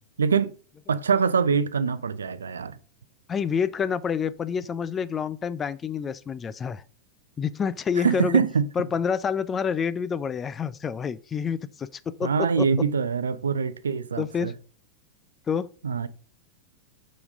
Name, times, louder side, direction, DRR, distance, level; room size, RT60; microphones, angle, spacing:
voice 1, 0.2-0.5 0.9-2.8 8.0-8.6 12.2-14.5 15.8-16.1, right 6 dB, 70° right, 0.5 m, -24 dB
voice 2, 3.3-6.8 7.4-8.4 8.8-12.7 14.2-14.5 15.5-15.7, left 6 dB, 20° left, 0.4 m, -28 dB
5.1 x 4.7 x 5.1 m
figure-of-eight pair, 90°, 0 cm